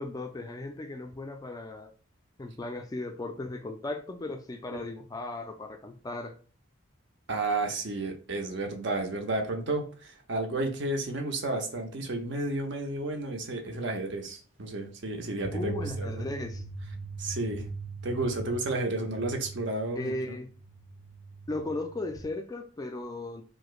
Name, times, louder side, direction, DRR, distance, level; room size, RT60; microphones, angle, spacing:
voice 1, 0.0-1.9 2.4-6.3 15.5-16.6 20.0-20.5 21.5-23.4, left 2 dB, 20° left, 6 dB, 0.3 m, -36 dB
voice 2, 7.3-16.2 17.2-17.6 18.0-20.1, right 2 dB, 60° right, 3 dB, 0.7 m, -32 dB
sound 1, 15.4-22.2, right 3 dB, 30° right, 0.9 m, -40 dB
4.8 x 2.1 x 2.4 m, 0.38 s
head